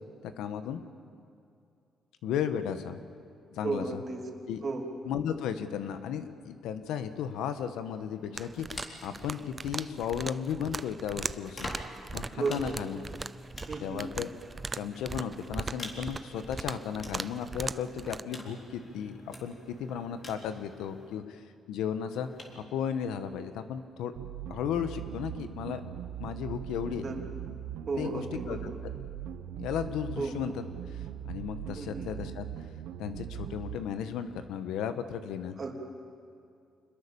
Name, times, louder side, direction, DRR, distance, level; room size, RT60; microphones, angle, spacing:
voice 1, 0.2-0.8 2.2-3.0 3.5-4.0 4.5-4.6 5.1-11.7 12.1-13.0 13.8-14.3 14.7-22.3 22.5-24.1 24.5-25.9 26.2-27.0 28.0-28.7 29.6-30.5 30.9-31.0 31.2-32.5 33.0-35.6, left 8 dB, 90° left, 10 dB, 1.4 m, -35 dB
voice 2, 3.6-4.2 4.6-4.9 12.4-12.7 13.7-14.1 27.0-27.2 27.9-28.8 30.2-30.3 31.8-32.1 35.6-35.7, right 4 dB, 40° right, 1 dB, 3.1 m, -34 dB
sound 1, 7.0-10.3 11.1-21.2 22.1-22.6, left 1 dB, 40° left, 3.9 m, -48 dB
sound 2, 8.3-18.2, right 3 dB, 25° right, 0.6 m, -40 dB
sound 3, 24.2-33.8, right 10 dB, 90° right, 1.2 m, -40 dB
26.0 x 21.5 x 7.1 m, 2.5 s
cardioid pair, 90°, 0 cm